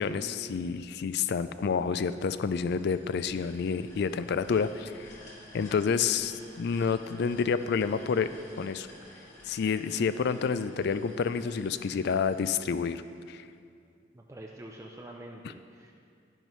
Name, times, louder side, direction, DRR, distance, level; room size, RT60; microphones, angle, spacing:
voice 1, 0.0-5.1 5.5-8.3 8.6-8.9 9.5-13.0 13.3-13.4, left 6 dB, 60° left, 13 dB, 0.3 m, -29 dB
sound 1, 1.3-13.4, left 1 dB, 40° left, 2.0 m, -53 dB
voice 2, 14.1-15.9, right 1 dB, 15° right, -1 dB, 0.5 m, -46 dB
10.5 x 10.5 x 3.2 m, 2.4 s
head